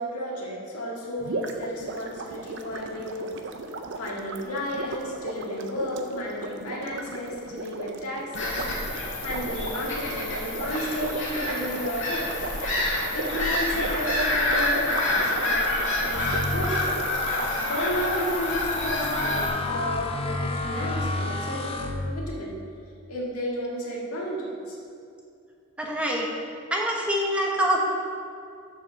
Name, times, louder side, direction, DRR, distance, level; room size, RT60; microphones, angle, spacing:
voice 1, 0.0-3.3 4.0-8.6 8.9-12.3 12.9-16.9 17.6-22.5 23.1-24.8, equal, 85° left, -4 dB, 1.8 m, -32 dB
sound 1, 1.2-17.5, right 3 dB, 55° right, 0.5 m, -37 dB
Bird vocalization bird call bird song / Gull seagull, 8.3-19.5, left 1 dB, 55° left, 2.1 m, -28 dB
Laser Charge, 16.1-22.5, left 2 dB, 25° left, 0.5 m, -31 dB
voice 2, 25.8-26.3 26.7-27.8, right 1 dB, 5° right, -2 dB, 1.0 m, -25 dB
7.1 x 5.0 x 6.3 m, 2.4 s
head